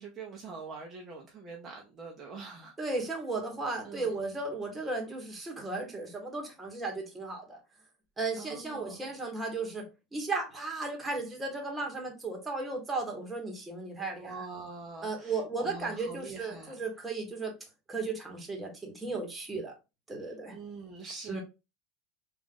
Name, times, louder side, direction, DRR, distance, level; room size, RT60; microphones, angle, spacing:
voice 1, 0.0-2.9 3.8-4.1 8.3-9.0 14.0-16.8 20.2-21.4, right 4 dB, 30° right, 0.7 m, -44 dB
voice 2, 2.8-7.6 8.2-9.8 10.1-14.3 15.0-17.5 17.9-19.7 20.1-20.5 21.3-21.4, right 3 dB, 10° right, 1.3 m, -35 dB
3.6 x 2.5 x 3.6 m
supercardioid pair, 135°, 0 cm